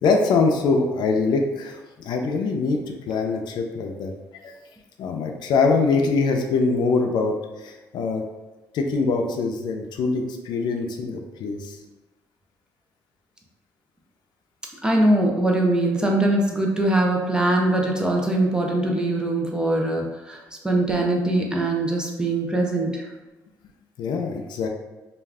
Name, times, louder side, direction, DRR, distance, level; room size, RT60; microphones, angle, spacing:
voice 1, 0.0-4.5 5.0-8.2 8.7-11.8 24.0-24.7, left 4 dB, 75° left, 3 dB, 0.4 m, -23 dB
voice 2, 14.8-20.4 20.6-23.1, right 1 dB, 10° right, 0 dB, 0.5 m, -22 dB
2.4 x 2.2 x 3.3 m, 1.1 s
cardioid pair, 90°, 8 cm